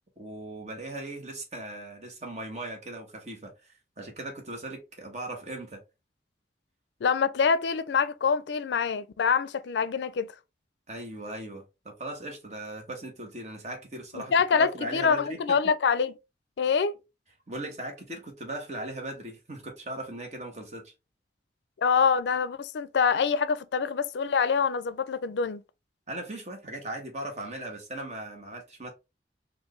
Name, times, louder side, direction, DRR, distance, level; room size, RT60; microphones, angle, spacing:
voice 1, 0.2-3.7 4.0-5.8 10.9-15.6 17.5-20.9 26.1-28.9, right 1 dB, 40° right, 1.2 m, -38 dB
voice 2, 7.0-10.3 14.1-16.1 16.6-16.9 21.8-25.6, left 6 dB, 80° left, 0.4 m, -25 dB
4.5 x 2.5 x 3.1 m
head